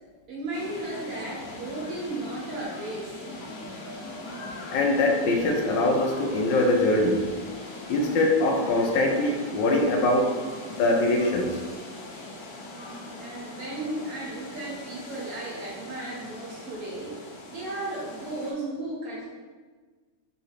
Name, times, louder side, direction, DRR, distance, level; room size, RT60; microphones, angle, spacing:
voice 1, 0.3-3.2 13.1-19.3, right 2 dB, 60° right, -3 dB, 1.1 m, -35 dB
sound 1, 0.5-18.5, left 2 dB, 65° left, 1.0 m, -41 dB
voice 2, 4.7-7.2 7.9-10.4 10.7-11.6, left 2 dB, 85° left, 2 dB, 1.3 m, -23 dB
3.8 x 3.1 x 3.1 m, 1.4 s
omnidirectional pair, 1.9 m